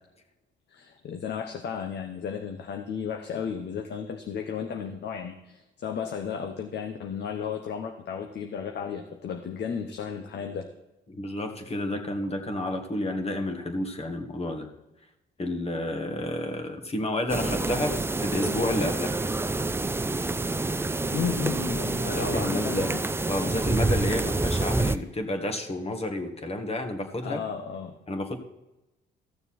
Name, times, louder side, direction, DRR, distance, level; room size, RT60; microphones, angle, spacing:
voice 1, 0.7-10.7 21.1-23.0 27.2-28.0, left 7 dB, 60° left, 5 dB, 0.9 m, -34 dB
voice 2, 11.1-14.7 15.4-19.1 22.2-22.9 23.3-27.4 28.1-28.4, left 1 dB, 30° left, 5 dB, 1.8 m, -30 dB
sound 1, 17.3-25.0, right 2 dB, 10° right, 0.5 m, -27 dB
14.0 x 6.8 x 4.3 m, 0.96 s
cardioid pair, 90°, 20 cm